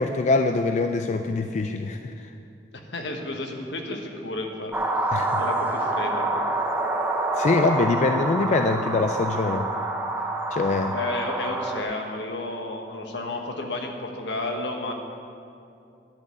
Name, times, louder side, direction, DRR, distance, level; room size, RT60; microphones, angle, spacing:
voice 1, 0.0-2.3 5.1-5.4 7.4-9.7 10.5-10.9, left 3 dB, 40° left, 6 dB, 0.3 m, -24 dB
voice 2, 2.9-4.7 5.4-6.4 10.9-14.9, left 2 dB, 75° left, 2 dB, 1.2 m, -32 dB
sound 1, 4.7-11.8, right 2 dB, 10° right, 0.7 m, -27 dB
11.0 x 5.3 x 8.0 m, 2.6 s
head